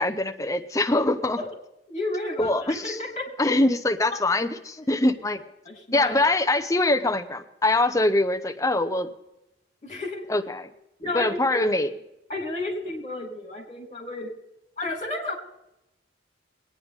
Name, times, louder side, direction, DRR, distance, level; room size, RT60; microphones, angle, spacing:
voice 1, 0.0-1.4 2.4-3.0 3.4-5.4 5.9-9.1 10.3-10.7 11.1-11.9, left 2 dB, 15° left, 6 dB, 0.7 m, -23 dB
voice 2, 1.9-3.3 4.1-4.2 4.8-5.0 5.7-6.1 9.8-10.2 11.0-11.6 12.3-14.3 14.8-15.3, left 2 dB, 35° left, 1 dB, 3.6 m, -32 dB
20.5 x 9.6 x 3.6 m, 0.86 s
head